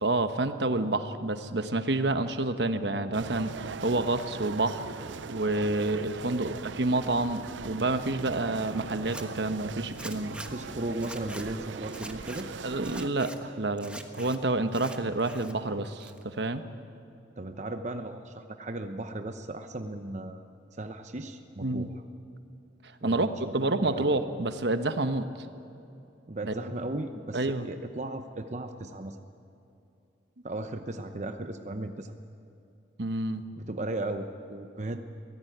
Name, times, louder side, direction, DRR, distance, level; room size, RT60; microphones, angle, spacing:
voice 1, 0.0-4.9 5.3-10.4 12.6-16.6 21.6-21.9 23.0-23.3 23.5-25.3 26.4-26.5 27.3-27.7 33.0-33.4, right 2 dB, 65° right, 9 dB, 1.1 m, -28 dB
sound 1, 3.1-13.1, right 5 dB, 85° right, 0.6 m, -40 dB
voice 2, 6.3-6.6 10.5-12.5 17.4-20.4 20.8-22.0 23.0-23.3 23.6-24.1 26.3-29.2 30.4-32.1 33.6-35.0, right 2 dB, 40° right, 7 dB, 0.9 m, -36 dB
Zipper (clothing), 9.0-9.2 10.0-10.5 11.0-11.4 11.9-12.4 12.8-13.4 13.8-14.4 14.7-15.5 15.8-16.4, right 2 dB, 5° right, 1.2 m, -44 dB
23.5 x 16.5 x 9.4 m, 2.7 s
head